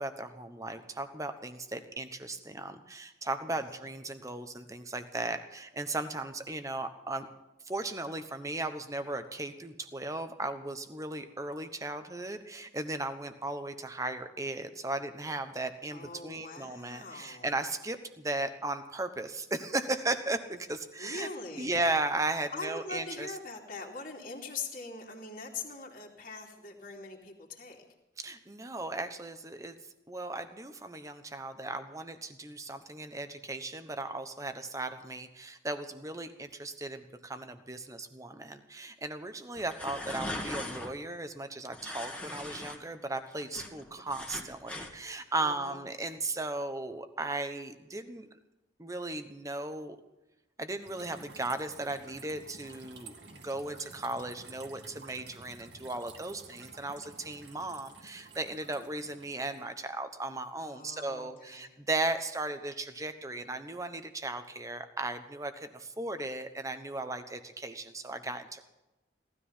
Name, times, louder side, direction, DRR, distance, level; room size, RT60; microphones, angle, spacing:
voice 1, 0.0-7.3 7.6-21.3 21.6-23.3 28.2-29.8 30.1-48.3 48.8-50.0 50.6-68.6, right 2 dB, 15° right, 8 dB, 1.1 m, -36 dB
voice 2, 15.9-17.5 21.0-21.8 22.5-27.8 43.5-43.6 45.4-45.8 60.6-61.7, left 3 dB, 45° left, -1 dB, 2.7 m, -42 dB
sound 1, 39.5-40.9 41.7-42.8 43.1-44.9, left 1 dB, 5° left, 1.8 m, -39 dB
sound 2, 50.8-59.7, right 4 dB, 65° right, 2.2 m, -52 dB
18.0 x 13.0 x 5.6 m, 1.0 s
head